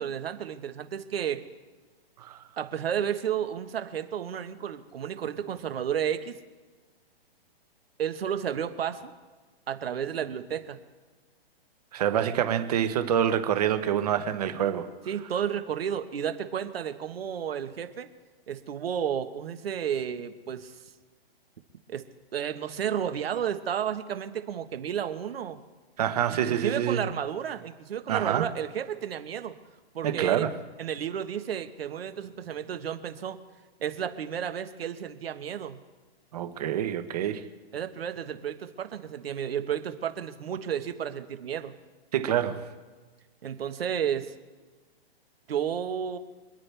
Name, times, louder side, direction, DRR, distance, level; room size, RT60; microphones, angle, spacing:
voice 1, 0.0-1.4 2.6-6.3 8.0-9.1 9.7-10.8 15.1-18.1 18.5-20.8 21.9-22.0 22.3-25.6 26.3-29.5 29.9-30.4 30.8-33.4 33.8-35.8 37.7-41.7 43.4-44.3 45.5-46.2, right 9 dB, 70° right, 1.5 m, -32 dB
voice 2, 11.9-14.9 26.0-27.1 28.1-28.5 30.0-30.5 36.3-37.5 42.1-42.7, right 9 dB, 40° right, 1.2 m, -26 dB
27.0 x 10.0 x 3.4 m
hypercardioid pair, 170°, 31 cm